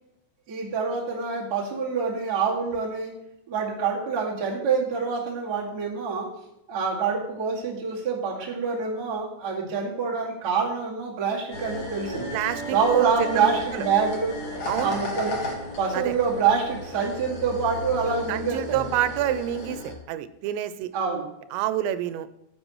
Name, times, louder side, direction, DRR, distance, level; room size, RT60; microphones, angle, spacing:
voice 1, 0.5-3.1 3.5-6.3 6.7-12.3 12.7-14.4 14.8-15.5 15.8-18.9 20.9-21.3, right 5 dB, 35° right, -5 dB, 1.9 m, -26 dB
sound 1, 11.5-19.9, left 1 dB, 55° left, 1.3 m, -35 dB
voice 2, 12.3-13.8 14.7-15.0 15.9-16.2 18.3-20.9 21.5-22.3, right 11 dB, 85° right, 12 dB, 2.8 m, -28 dB
15.0 x 7.6 x 3.1 m, 0.84 s
omnidirectional pair, 4.9 m